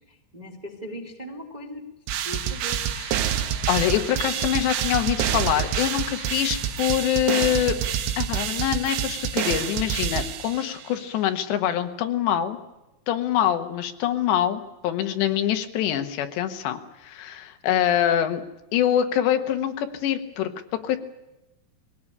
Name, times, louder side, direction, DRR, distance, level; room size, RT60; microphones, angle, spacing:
voice 1, 0.1-1.8 2.2-2.8 17.7-18.1, equal, 15° right, 2 dB, 1.9 m, -39 dB
sound 1, 2.1-10.9, right 9 dB, 80° right, 3.6 m, -27 dB
voice 2, 2.9-3.4 3.7-7.8 8.2-12.6 13.1-18.4 18.7-21.0, left 11 dB, 85° left, 7 dB, 3.6 m, -25 dB
21.0 x 17.5 x 9.9 m, 0.97 s
omnidirectional pair, 4.9 m